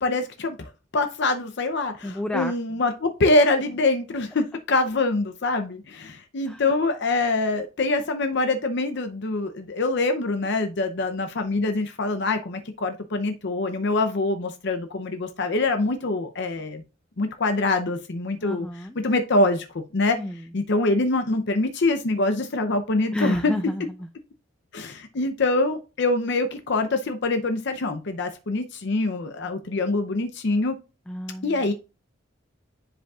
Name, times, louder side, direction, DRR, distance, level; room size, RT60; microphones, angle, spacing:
voice 1, 0.0-16.8 17.2-18.7 19.0-19.7 19.9-20.2 20.5-23.5 24.7-30.7 31.4-31.7, left 2 dB, 60° left, 7 dB, 0.7 m, -24 dB
voice 2, 2.0-2.5 6.5-6.6 18.4-19.0 20.1-20.4 23.1-24.1 31.1-31.6, left 1 dB, 5° left, 7 dB, 0.4 m, -30 dB
9.9 x 5.0 x 2.4 m, 0.31 s
head